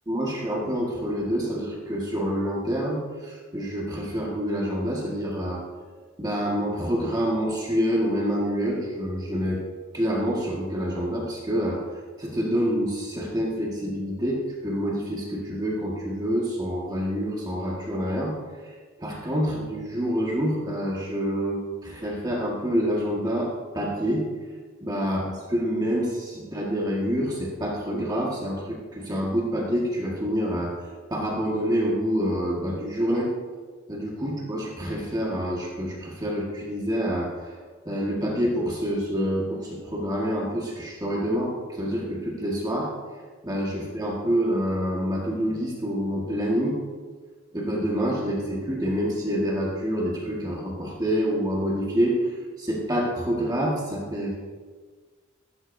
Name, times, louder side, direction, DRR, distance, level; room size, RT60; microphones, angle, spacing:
voice 1, 0.1-5.6 6.2-9.6 9.9-11.8 12.2-18.3 18.6-18.7 19.0-24.3 24.8-30.7 31.1-33.3 33.9-37.3 37.8-42.9 43.4-46.8 47.5-54.4, equal, 20° right, -3 dB, 1.6 m, -27 dB
15.0 x 12.0 x 2.7 m, 1.5 s
head